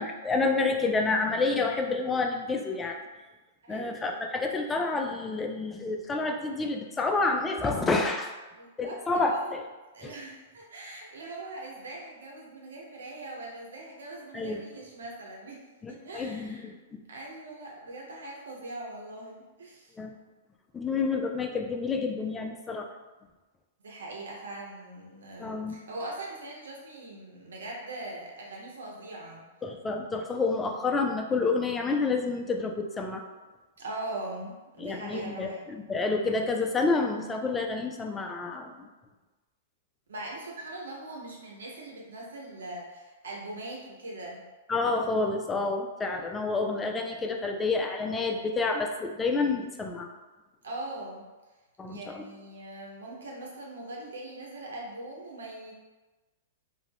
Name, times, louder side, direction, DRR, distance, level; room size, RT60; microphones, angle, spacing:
voice 1, 0.0-3.0 3.7-8.3 8.8-9.6 10.0-10.1 14.3-14.6 15.8-16.8 20.0-20.1 20.7-22.9 25.4-25.8 29.6-33.2 34.8-38.9 44.7-50.1 51.8-52.2, left 3 dB, 15° left, 3 dB, 0.3 m, -29 dB
voice 2, 3.6-4.1 8.5-9.6 9.9-15.6 15.9-16.7 17.1-19.9 23.8-29.5 33.8-35.6 40.1-44.4 50.6-51.2 51.9-55.7, right 2 dB, 90° right, -2 dB, 0.7 m, -41 dB
2.4 x 2.1 x 3.3 m, 1.2 s
hypercardioid pair, 140°, 0 cm